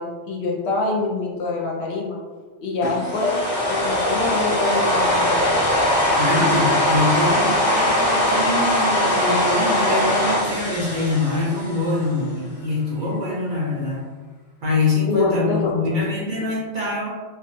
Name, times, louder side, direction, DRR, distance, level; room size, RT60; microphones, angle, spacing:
voice 1, 0.0-2.2 2.6-5.4 15.1-16.0, left 3 dB, 70° left, -2 dB, 0.8 m, -25 dB
sound 1, 2.8-12.0, left 1 dB, 35° left, 0.7 m, -21 dB
voice 2, 6.2-14.1 14.6-17.1, left 2 dB, 55° right, -5 dB, 0.6 m, -24 dB
2.3 x 2.2 x 2.9 m, 1.4 s
omnidirectional pair, 1.2 m